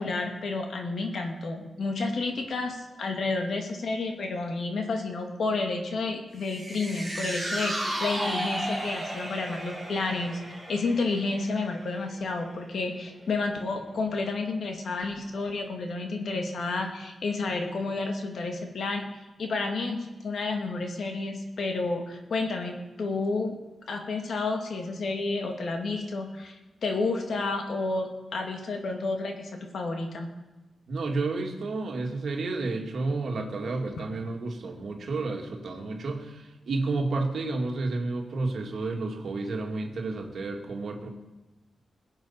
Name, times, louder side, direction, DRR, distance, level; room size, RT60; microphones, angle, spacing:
voice 1, 0.0-10.4 10.7-19.1 19.4-23.6 23.9-30.3, left 3 dB, 65° left, 3 dB, 2.2 m, -30 dB
sound 1, 6.4-12.9 13.2-13.3, right 1 dB, 5° left, 4.8 m, -35 dB
voice 2, 30.9-41.1, right 3 dB, 65° right, 2 dB, 2.2 m, -31 dB
21.5 x 8.1 x 5.7 m, 1.1 s
wide cardioid pair, 110°, 0 cm